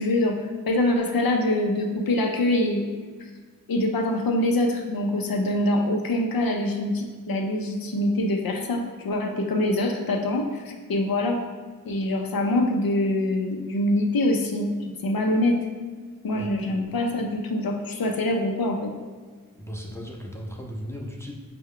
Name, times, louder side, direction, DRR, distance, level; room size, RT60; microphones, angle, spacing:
voice 1, 0.0-2.8 3.7-11.4 11.8-15.6 16.2-18.9, left 1 dB, 90° left, 2 dB, 0.5 m, -24 dB
voice 2, 19.6-21.3, equal, 10° left, -1 dB, 0.6 m, -36 dB
4.4 x 2.2 x 3.6 m, 1.5 s
cardioid pair, 40°, 34 cm